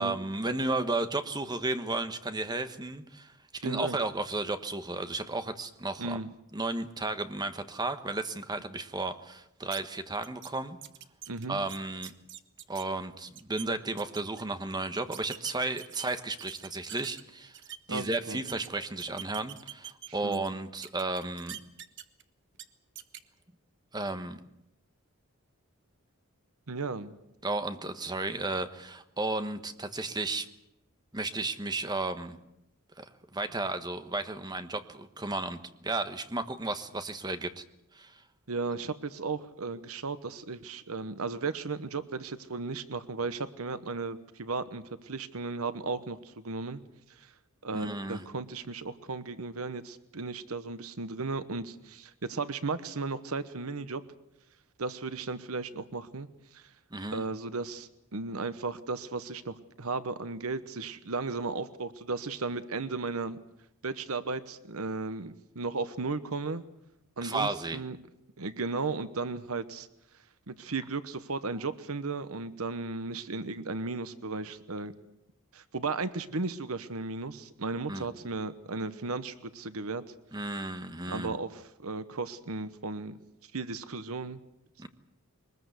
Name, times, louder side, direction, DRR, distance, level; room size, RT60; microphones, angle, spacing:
voice 1, 0.0-3.3 3.6-6.2 6.5-10.8 11.5-12.1 12.7-17.5 17.9-21.6 23.9-24.4 27.4-30.5 31.1-32.4 33.0-33.1 33.3-37.6 37.9-38.2 47.7-48.3 56.9-57.2 67.2-67.8 77.9-78.1 80.3-81.4 84.8-84.9, right 2 dB, 20° right, 9 dB, 1.3 m, -33 dB
voice 2, 3.6-4.0 6.0-6.3 11.3-11.6 17.9-18.4 20.2-20.4 26.7-27.1 38.5-46.8 47.2-47.3 47.6-54.0 54.8-56.3 56.5-56.6 57.1-63.4 63.8-66.6 67.2-68.0 68.4-69.9 70.5-74.9 75.5-80.0 81.0-83.2 83.5-84.4, right 3 dB, 75° right, 13 dB, 1.1 m, -35 dB
sound 1, 9.7-9.8 10.2-10.5 10.8-12.8 13.2-13.7 14.0-14.4 15.1-17.2 17.5-18.7 19.0-20.5 20.8-22.2 22.5-22.6 23.0-23.2, right 10 dB, 55° right, 1.2 m, -44 dB
22.5 x 20.5 x 8.2 m, 0.84 s
head